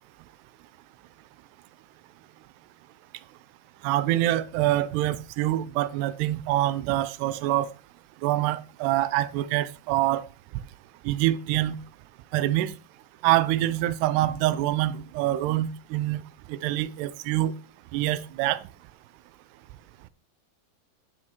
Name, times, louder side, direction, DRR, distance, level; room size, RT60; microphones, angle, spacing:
voice 1, 3.8-7.7 8.2-10.3 11.1-11.8 12.3-12.7 13.2-16.2 16.5-17.5 17.9-18.6, right 14 dB, 90° right, 2.7 m, -25 dB
14.5 x 6.3 x 3.0 m
omnidirectional pair, 4.7 m